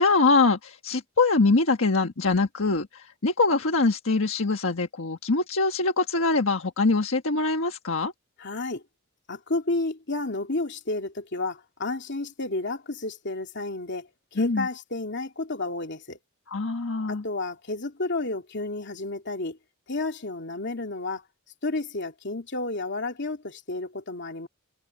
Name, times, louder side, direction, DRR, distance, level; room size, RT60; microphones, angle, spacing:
voice 1, 0.0-8.1 14.4-14.7 16.5-17.2, left 3 dB, 75° left, 1.4 m, -23 dB
voice 2, 8.4-8.8 9.3-16.2 17.1-19.6 19.9-21.2 21.6-24.5, left 2 dB, 60° left, 2.8 m, -31 dB
head